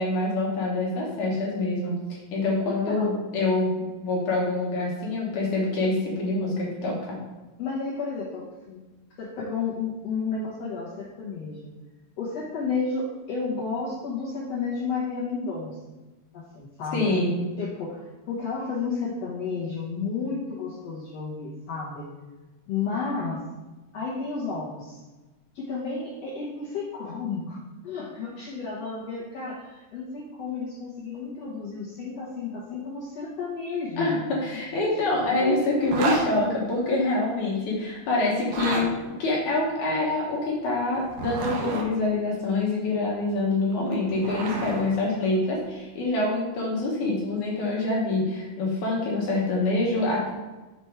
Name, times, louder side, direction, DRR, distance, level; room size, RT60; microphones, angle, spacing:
voice 1, 0.0-2.0 2.3-3.7 4.0-7.2 16.9-17.3 34.0-38.9 39.2-50.3, left 2 dB, 60° left, -4 dB, 2.3 m, -26 dB
voice 2, 7.6-8.8 9.2-11.7 12.2-15.8 16.3-17.2 17.6-22.1 22.7-23.4 23.9-25.0 25.5-27.6 27.8-34.2 34.5-34.6 35.0-35.4, left 4 dB, 85° left, -7 dB, 1.4 m, -32 dB
Zipper (clothing), 35.8-36.2 38.4-38.9 41.0-41.9 43.7-44.8, right 3 dB, 75° right, 2.0 m, -29 dB
7.0 x 4.5 x 4.7 m, 1.2 s
omnidirectional pair, 4.8 m